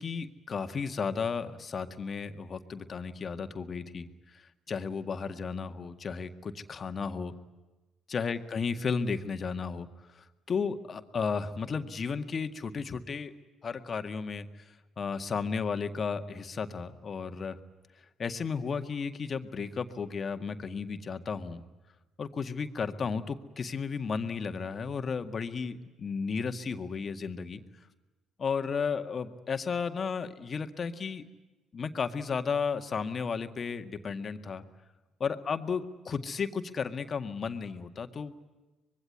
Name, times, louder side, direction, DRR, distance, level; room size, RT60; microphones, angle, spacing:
voice 1, 0.0-7.3 8.1-13.3 13.6-17.6 18.2-21.6 22.2-27.6 28.4-31.2 31.7-34.7 35.2-38.6, left 5 dB, 45° left, 8 dB, 1.9 m, -34 dB
25.5 x 22.0 x 9.6 m, 1.1 s
hypercardioid pair, 50°, 0 cm